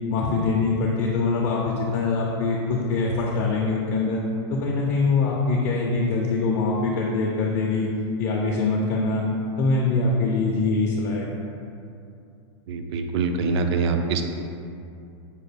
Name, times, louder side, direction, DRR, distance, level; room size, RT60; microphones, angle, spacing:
voice 1, 0.1-4.2 4.5-7.9 8.2-9.2 9.6-11.3, left 3 dB, 40° left, -2 dB, 0.4 m, -23 dB
voice 2, 12.7-14.2, right 4 dB, 65° right, 6 dB, 0.4 m, -24 dB
5.2 x 2.2 x 3.3 m, 2.6 s
supercardioid pair, 150°, 15 cm